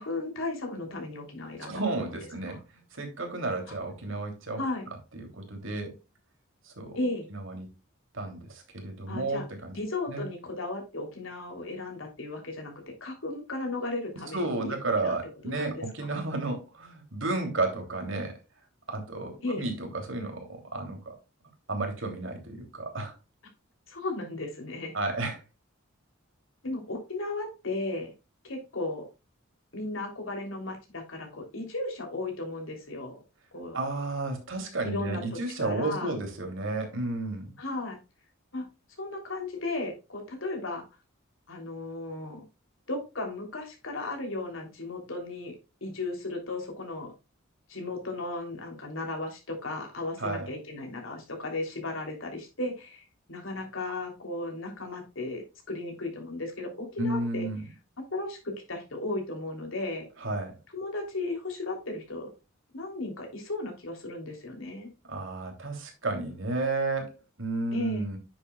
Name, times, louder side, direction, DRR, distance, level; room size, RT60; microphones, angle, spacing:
voice 1, 0.0-1.8 2.5-2.6 4.6-4.9 6.9-7.3 9.1-9.4 9.7-12.7 13.0-14.7 15.0-15.1 15.4-16.1 19.4-19.7 23.9-24.9 26.6-28.1 28.4-29.1 29.7-33.2 33.5-33.8 34.8-35.2 35.6-36.1 37.6-38.0 38.5-38.7 39.0-40.9 41.5-42.4 42.9-47.1 47.7-53.0 53.3-57.5 58.1-60.1 60.7-62.3 62.7-64.9 67.7-68.1, left 2 dB, 70° left, 3 dB, 3.2 m, -35 dB
voice 2, 1.6-4.6 5.1-5.9 6.6-7.0 7.3-7.7 8.1-9.8 10.1-10.3 14.3-18.4 18.9-21.1 21.7-23.1 24.9-25.4 33.7-37.6 50.2-50.5 57.0-57.6 60.2-60.6 65.1-68.2, right 2 dB, 65° right, 3 dB, 3.0 m, -32 dB
9.8 x 7.3 x 2.3 m, 0.28 s
head